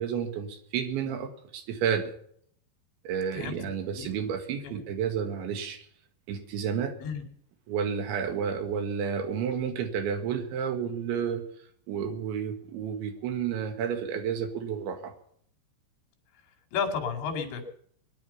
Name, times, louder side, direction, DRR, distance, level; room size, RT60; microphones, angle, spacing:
voice 1, 0.0-2.1 3.1-5.9 6.3-7.0 7.7-11.5 11.9-15.1, right 7 dB, 80° right, 6 dB, 4.2 m, -31 dB
voice 2, 3.3-3.7 3.9-4.1 4.6-4.8 7.0-7.2 16.7-17.6, left 6 dB, 75° left, 3 dB, 4.8 m, -32 dB
22.5 x 11.0 x 5.7 m, 0.63 s
omnidirectional pair, 5.2 m